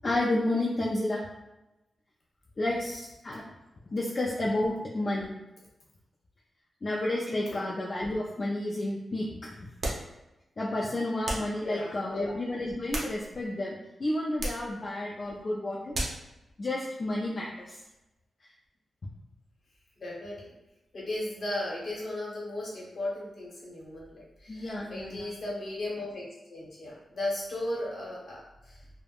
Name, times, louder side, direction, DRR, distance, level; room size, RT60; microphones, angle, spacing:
voice 1, 0.0-1.3 2.6-3.4 3.9-5.3 6.8-9.6 10.6-16.1 16.6-17.7 24.5-25.3, left 1 dB, 35° left, -3 dB, 0.3 m, -31 dB
sound 1, 9.8-10.1 11.2-11.6 12.6-13.5 14.4-14.7 15.9-16.3, right 1 dB, 50° right, 0.6 m, -34 dB
voice 2, 11.6-12.2 20.0-20.5 20.9-28.4 28.6-28.8, left 1 dB, 55° left, -5 dB, 0.9 m, -36 dB
3.3 x 2.0 x 2.3 m, 0.98 s
wide cardioid pair, 140°, 0 cm